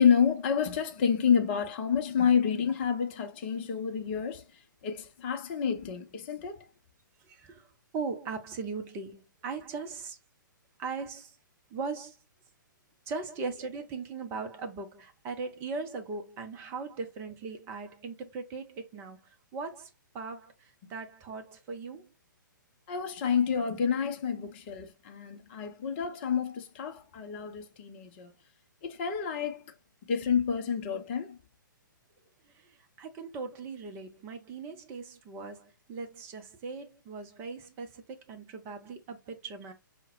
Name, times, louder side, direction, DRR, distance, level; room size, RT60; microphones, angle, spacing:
voice 1, 0.0-4.4 4.8-6.7 22.9-28.3 28.8-29.6 30.1-31.4, left 7 dB, 30° left, 0.5 m, -29 dB
voice 2, 7.3-7.7 7.9-10.2 10.8-11.4 11.7-12.2 13.1-22.1 32.5-39.7, right 4 dB, 20° right, 0.6 m, -39 dB
5.6 x 2.1 x 3.0 m
figure-of-eight pair, 120°, 11 cm